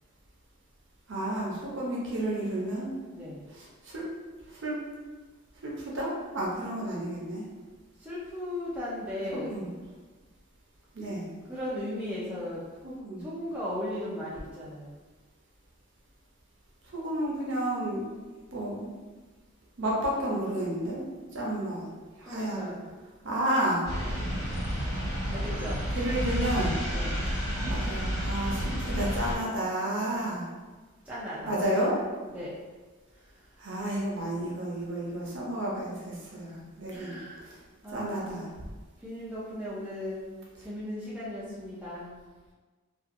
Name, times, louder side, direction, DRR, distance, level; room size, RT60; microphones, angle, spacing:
voice 1, 1.1-2.9 3.8-4.0 4.5-4.8 5.6-7.4 9.3-9.7 10.9-11.3 12.8-13.2 16.9-18.0 18.5-18.9 19.8-21.0 21.3-21.9 22.2-22.7 23.2-23.9 25.9-26.8 27.6-30.5 31.5-32.0 33.6-37.2 37.5-37.6 37.9-38.5, right 1 dB, 55° right, -4 dB, 0.7 m, -31 dB
voice 2, 3.1-3.4 8.0-9.6 11.4-12.6 13.2-15.0 22.2-22.8 24.0-24.2 25.3-25.8 26.9-27.2 30.2-30.5 31.0-31.6 32.2-32.5 33.1-33.6 36.3-36.6 36.9-37.6 37.8-38.5 39.0-42.2, left 1 dB, 5° right, -9 dB, 0.5 m, -37 dB
sound 1, 23.8-29.3, equal, 70° left, 1.2 m, -30 dB
2.6 x 2.4 x 2.5 m, 1.3 s
head